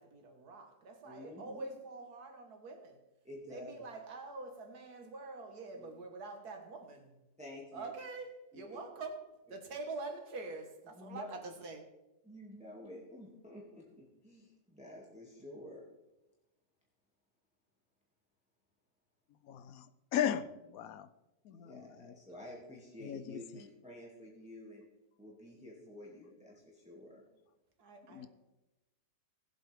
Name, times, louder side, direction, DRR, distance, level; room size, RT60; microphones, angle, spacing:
voice 1, 0.0-3.0 3.5-7.2 7.7-11.9 27.8-28.3, right 3 dB, 70° right, 4 dB, 2.0 m, -45 dB
voice 2, 1.0-1.7 3.2-3.7 5.7-5.9 7.4-7.9 8.5-8.8 10.9-11.3 12.2-15.8 21.5-24.8 25.2-27.2, left 1 dB, 5° right, -4 dB, 2.1 m, -50 dB
voice 3, 19.5-19.8 20.1-20.4 20.7-21.1 21.5-21.8 23.0-23.4 28.1-28.3, left 10 dB, 70° left, 13 dB, 1.0 m, -35 dB
19.0 x 8.0 x 3.5 m, 1.0 s
omnidirectional pair, 1.7 m